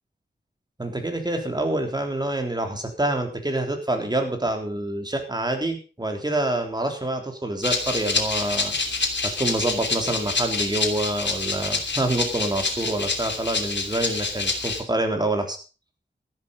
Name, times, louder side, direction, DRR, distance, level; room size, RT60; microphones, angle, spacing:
voice 1, 0.8-8.8 9.2-15.6, right 1 dB, 20° right, 4 dB, 3.6 m, -26 dB
Rattle (instrument), 7.6-14.8, left 3 dB, 80° left, 3.0 m, -27 dB
14.0 x 11.0 x 5.4 m, 0.36 s
wide cardioid pair, 100°, 18 cm